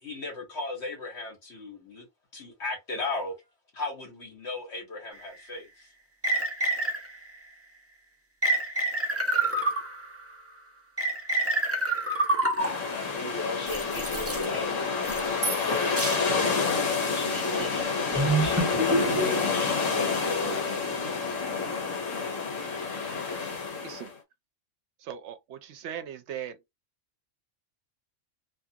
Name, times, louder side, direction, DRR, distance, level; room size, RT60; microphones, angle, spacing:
voice 1, 0.0-2.1 2.3-3.3 3.7-5.9, left 3 dB, 60° left, 1.4 m, -36 dB
sound 1, 5.2-5.3 6.2-7.3 8.4-10.2 11.0-13.0 13.7-14.4 15.0-15.7 16.0-16.2 16.7-16.9 17.6-19.5, right 2 dB, 15° right, 0.6 m, -27 dB
sound 2, 12.6-24.1, left 4 dB, 85° left, 1.3 m, -29 dB
voice 2, 12.8-15.0 15.4-16.4 17.1-20.9, left 2 dB, 20° left, 0.8 m, -36 dB
voice 3, 25.0-26.6, right 9 dB, 70° right, 0.9 m, -39 dB
2.8 x 2.4 x 2.7 m
omnidirectional pair, 1.3 m